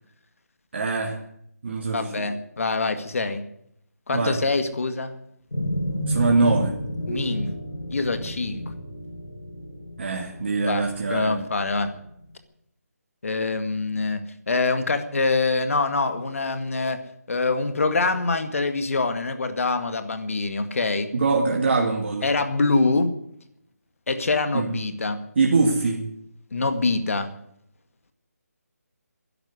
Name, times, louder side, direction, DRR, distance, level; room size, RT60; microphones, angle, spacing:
voice 1, 0.7-1.2 1.6-2.3 4.1-4.4 6.1-6.7 10.0-11.4 21.1-22.3 24.5-24.7 25.4-26.1, right 3 dB, 40° right, 0 dB, 2.3 m, -23 dB
voice 2, 1.9-3.4 4.1-5.2 7.1-7.6 7.9-8.7 10.7-11.9 13.2-17.0 17.3-21.1 22.2-23.1 24.1-25.3 26.5-27.3, left 3 dB, 55° left, 9 dB, 2.0 m, -25 dB
sound 1, 5.5-12.1, equal, 90° left, 5.5 m, -31 dB
13.0 x 11.0 x 9.7 m, 0.73 s
figure-of-eight pair, 165°, 9 cm